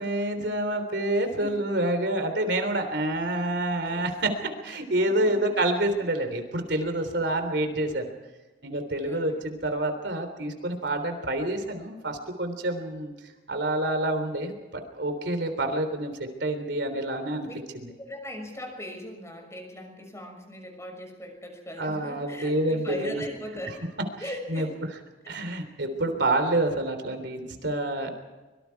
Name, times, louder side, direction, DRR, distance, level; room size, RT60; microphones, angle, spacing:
voice 1, 0.0-4.3 4.6-8.1 8.6-13.1 13.5-17.5 21.8-23.2 24.5-24.7 25.3-28.1, right 1 dB, 65° right, 7 dB, 3.5 m, -28 dB
voice 2, 1.1-1.7 3.2-3.4 3.8-4.4 5.0-5.5 6.2-6.3 9.0-9.3 17.4-17.5 18.0-23.9 24.2-24.7 25.2-25.6, equal, 15° left, 3 dB, 6.2 m, -40 dB
25.5 x 24.0 x 4.8 m, 1.2 s
head